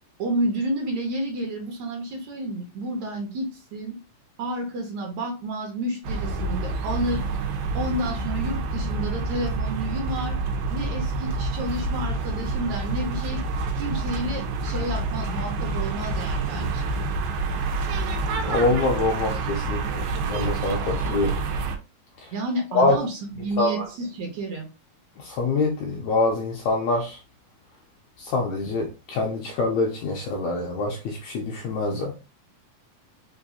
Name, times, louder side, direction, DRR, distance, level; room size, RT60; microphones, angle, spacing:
voice 1, 0.2-3.9 4.4-7.2 7.7-10.4 10.7-13.4 13.8-16.8 22.3-24.7, right 1 dB, 65° right, 2.0 m, -30 dB
sound 1, 6.0-21.8, right 3 dB, 85° right, 2.6 m, -28 dB
voice 2, 18.4-21.4 22.7-23.0 23.6-23.8 25.2-27.2 28.2-32.1, left 2 dB, 80° left, 1.7 m, -25 dB
5.6 x 2.5 x 2.6 m
omnidirectional pair, 3.9 m